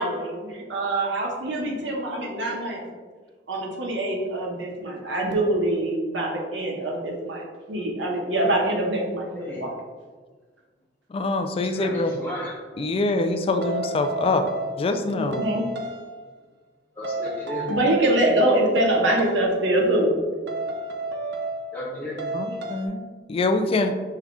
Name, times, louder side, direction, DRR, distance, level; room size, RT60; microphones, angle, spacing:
voice 1, 0.0-2.8 3.5-9.7 15.1-15.7 17.7-20.2, right 1 dB, 85° right, 0 dB, 0.9 m, -24 dB
voice 2, 11.1-12.1 12.8-14.5 14.8-15.5 22.3-23.9, left 2 dB, 30° left, 7 dB, 0.3 m, -24 dB
voice 3, 11.6-12.5 17.0-17.7 21.7-22.3, left 1 dB, 10° left, -7 dB, 0.7 m, -34 dB
sound 1, 13.6-15.0 15.3-16.2 17.0-18.3 18.8-19.5 20.5-21.9 22.2-22.9, right 2 dB, 65° right, 0.5 m, -32 dB
5.5 x 2.4 x 3.6 m, 1.5 s
head